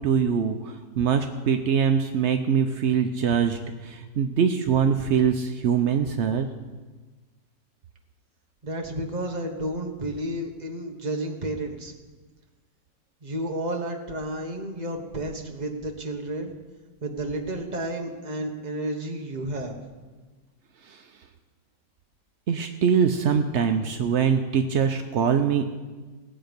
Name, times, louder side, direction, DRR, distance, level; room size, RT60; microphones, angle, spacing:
voice 1, 0.0-6.5 20.8-21.0 22.5-25.7, right 7 dB, 70° right, 6 dB, 0.6 m, -23 dB
voice 2, 8.6-11.9 13.2-16.5 17.0-19.8, right 1 dB, 25° right, 2 dB, 1.2 m, -31 dB
19.0 x 7.9 x 5.2 m, 1.3 s
omnidirectional pair, 1.9 m